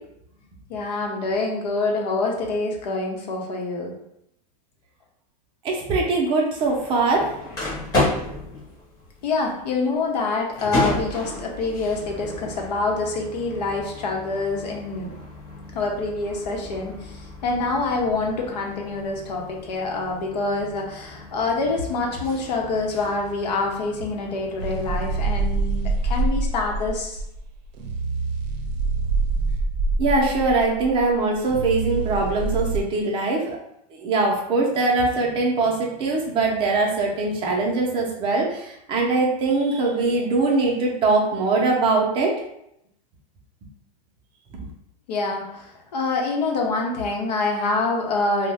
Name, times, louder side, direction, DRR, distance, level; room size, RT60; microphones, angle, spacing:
voice 1, 0.7-3.9 9.2-15.1 15.7-16.9 17.4-27.2 45.1-45.6 45.9-48.5, left 3 dB, 90° left, 1 dB, 0.8 m, -26 dB
voice 2, 5.6-7.3 30.0-33.4 34.0-42.3, right 3 dB, 25° right, -1 dB, 0.5 m, -22 dB
sound 1, 6.6-25.2, left 2 dB, 15° left, 0.8 m, -33 dB
sound 2, 24.6-32.8, right 3 dB, 80° right, 0.5 m, -25 dB
2.7 x 2.1 x 3.3 m, 0.78 s
supercardioid pair, 155°, 21 cm